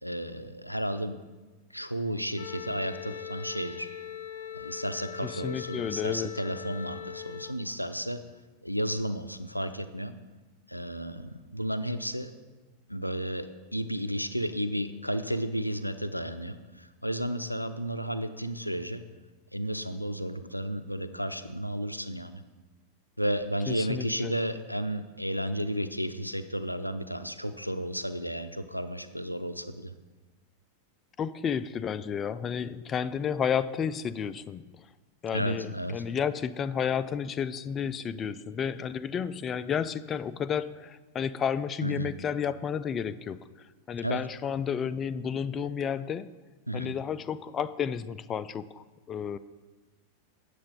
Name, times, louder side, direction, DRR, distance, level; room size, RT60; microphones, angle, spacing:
voice 1, 0.0-1.2 1.7-3.9 4.5-8.2 8.6-10.1 10.7-12.3 12.9-19.0 19.5-22.4 23.2-29.9 35.3-36.0 41.8-42.1 44.0-44.2 46.7-47.0, equal, 90° left, 10 dB, 0.5 m, -33 dB
Wind instrument woodwind instrument, 2.4-7.5, left 10 dB, 50° left, 0.7 m, -41 dB
voice 2, 5.2-6.3 23.7-24.3 31.2-34.7 35.2-46.3 46.7-49.4, left 7 dB, 25° left, 13 dB, 0.3 m, -32 dB
8.7 x 6.7 x 5.3 m, 1.2 s
figure-of-eight pair, 90°, 0 cm